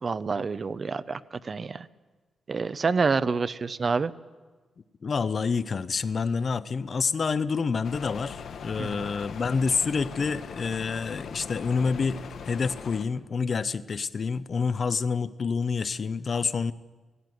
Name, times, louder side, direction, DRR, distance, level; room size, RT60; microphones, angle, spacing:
voice 1, 0.0-1.9 2.5-4.1 8.8-9.0, right 4 dB, 35° right, 14 dB, 0.6 m, -28 dB
voice 2, 5.0-16.7, left 5 dB, 40° left, 15 dB, 0.6 m, -28 dB
sound 1, 7.8-13.0, left 6 dB, 70° left, 1.3 m, -40 dB
17.5 x 16.5 x 9.4 m, 1.3 s
wide cardioid pair, 135°, 0 cm